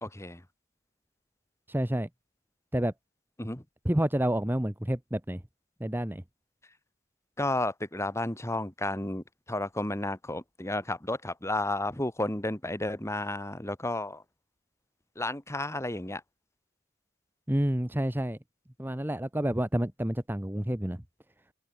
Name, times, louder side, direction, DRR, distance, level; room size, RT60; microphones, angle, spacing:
voice 1, 0.0-0.4 3.4-3.6 7.4-14.2 15.2-16.2, left 2 dB, 10° left, 2.1 m, -32 dB
voice 2, 1.7-2.1 2.7-2.9 3.8-5.4 5.8-6.2 17.5-18.4 18.8-21.0, right 1 dB, 10° right, 1.0 m, -29 dB
head